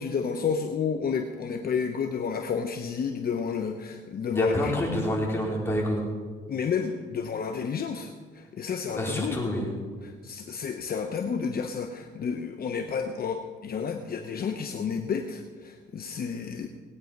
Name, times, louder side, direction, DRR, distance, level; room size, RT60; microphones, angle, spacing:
voice 1, 0.0-4.7 6.5-9.4 10.0-16.7, left 6 dB, 50° left, 5 dB, 0.9 m, -31 dB
voice 2, 4.3-6.0 8.9-9.7, equal, 10° left, -4 dB, 4.7 m, -27 dB
19.0 x 9.2 x 5.3 m, 1.5 s
cardioid pair, 90°, 20 cm